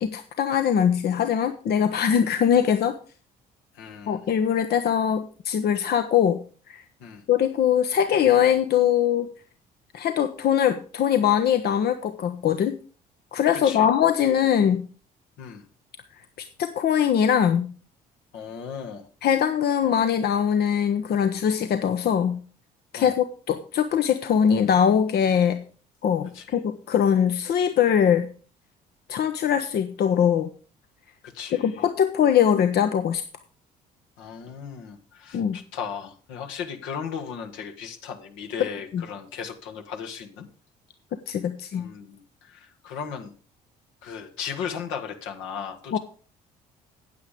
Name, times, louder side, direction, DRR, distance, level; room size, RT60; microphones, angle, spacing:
voice 1, 0.0-3.0 4.1-6.8 7.3-9.3 9.9-12.8 13.3-14.9 16.6-17.7 19.2-22.4 22.9-25.6 26.0-28.3 29.1-30.5 31.5-33.2 35.3-35.6 38.9-39.0 41.3-41.9 45.9-46.0, left 8 dB, 50° left, 10 dB, 0.8 m, -22 dB
voice 2, 3.7-4.2 7.0-7.2 13.5-13.9 15.4-15.7 18.3-19.1 23.0-23.1 26.3-26.6 31.2-31.8 34.2-40.5 41.7-43.3 44.0-46.0, left 7 dB, 70° left, 4 dB, 1.6 m, -36 dB
9.4 x 8.5 x 5.1 m, 0.40 s
hypercardioid pair, 55°, 20 cm